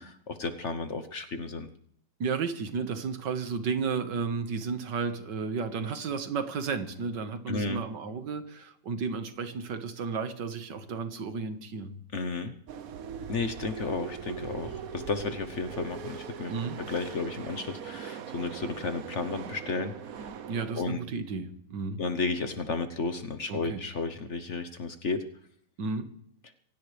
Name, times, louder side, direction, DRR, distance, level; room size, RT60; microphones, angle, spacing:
voice 1, 0.0-1.7 7.5-7.8 12.1-12.5 13.3-16.5 16.9-20.3 20.7-21.0 22.0-25.2, left 4 dB, 45° left, 9 dB, 1.2 m, -33 dB
voice 2, 2.2-12.0 16.5-16.8 20.5-22.0 23.5-23.8 25.8-26.1, right 5 dB, 80° right, 9 dB, 2.0 m, -33 dB
sound 1, 12.7-20.8, right 7 dB, 60° right, 1.2 m, -41 dB
25.0 x 17.0 x 3.3 m, 0.66 s
omnidirectional pair, 1.9 m